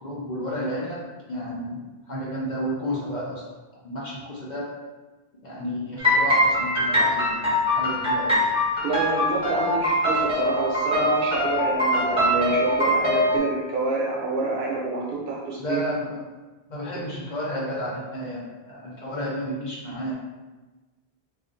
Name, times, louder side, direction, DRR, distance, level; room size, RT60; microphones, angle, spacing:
voice 1, 0.0-3.4 3.8-4.7 5.4-8.4 15.6-16.2 16.7-20.1, equal, 50° left, -5 dB, 0.7 m, -31 dB
sound 1, 6.0-13.4, left 1 dB, 5° right, 0.7 m, -22 dB
voice 2, 8.8-15.8 16.9-17.0, right 3 dB, 60° right, -4 dB, 0.8 m, -27 dB
2.5 x 2.4 x 3.8 m, 1.2 s
omnidirectional pair, 1.1 m